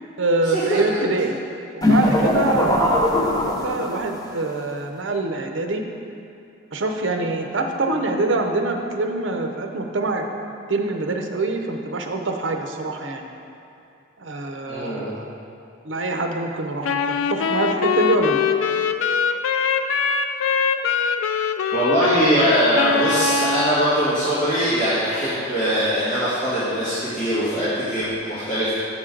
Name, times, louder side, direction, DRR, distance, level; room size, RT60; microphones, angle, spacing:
voice 1, 0.2-1.4 1.7-5.8 6.7-10.3 10.7-13.2 14.2-15.3 15.8-18.4, right 2 dB, 70° right, 4 dB, 0.7 m, -25 dB
sound 1, 1.8-4.2, left 1 dB, 20° left, 0.5 m, -20 dB
voice 2, 14.7-15.1 21.7-28.7, right 1 dB, 40° left, -14 dB, 1.9 m, -21 dB
Wind instrument woodwind instrument, 16.8-23.8, left 6 dB, 85° left, 0.4 m, -22 dB
8.5 x 6.1 x 3.8 m, 2.6 s
head